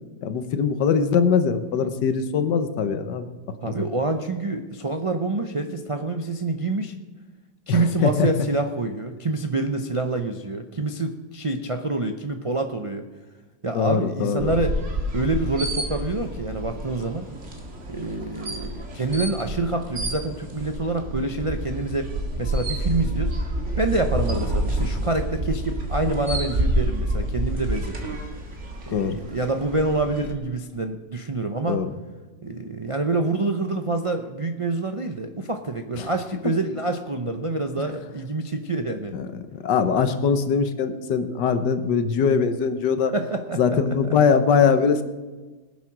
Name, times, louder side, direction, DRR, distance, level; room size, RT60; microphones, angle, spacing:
voice 1, 0.2-3.3 3.7-3.9 7.7-8.3 13.7-14.5 28.9-29.2 31.7-31.9 36.0-36.1 39.1-43.1 43.6-45.0, left 6 dB, 85° left, 10 dB, 1.6 m, -22 dB
voice 2, 3.6-6.9 7.7-13.0 13.6-14.8 15.1-17.3 17.9-22.1 22.4-23.4 23.8-28.2 28.9-31.8 32.4-39.1 43.0-44.0, right 2 dB, 60° right, 5 dB, 0.3 m, -27 dB
sound 1, 14.4-30.3, right 1 dB, 45° right, 2.0 m, -29 dB
20.0 x 7.4 x 6.1 m, 1.3 s
omnidirectional pair, 1.8 m